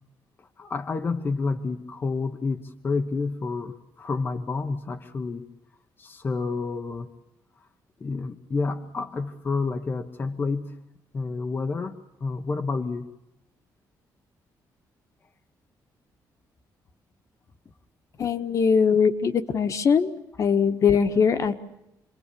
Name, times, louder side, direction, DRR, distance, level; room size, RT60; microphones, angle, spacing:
voice 1, 0.6-5.5 6.0-7.1 8.0-10.8 11.1-13.1, left 4 dB, 30° left, 5 dB, 1.1 m, -29 dB
voice 2, 18.2-21.5, left 6 dB, 45° left, 9 dB, 1.6 m, -21 dB
28.0 x 22.5 x 8.5 m, 0.89 s
cardioid pair, 165°, 8 cm